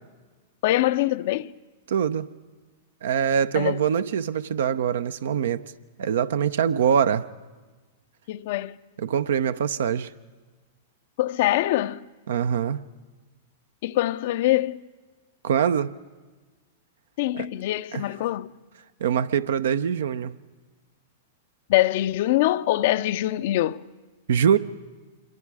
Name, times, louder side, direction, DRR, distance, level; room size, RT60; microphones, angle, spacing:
voice 1, 0.6-1.6 3.5-3.8 8.3-8.8 11.2-12.1 13.8-14.8 17.2-18.5 21.7-23.9, left 15 dB, 60° left, 0.6 m, -24 dB
voice 2, 1.9-2.3 3.0-5.6 6.0-7.3 9.0-10.1 12.3-12.8 15.4-15.9 17.3-17.5 17.9-18.0 19.0-20.3 24.3-24.6, right 8 dB, 75° right, 0.7 m, -23 dB
27.0 x 23.0 x 4.9 m
hypercardioid pair, 110°, 0 cm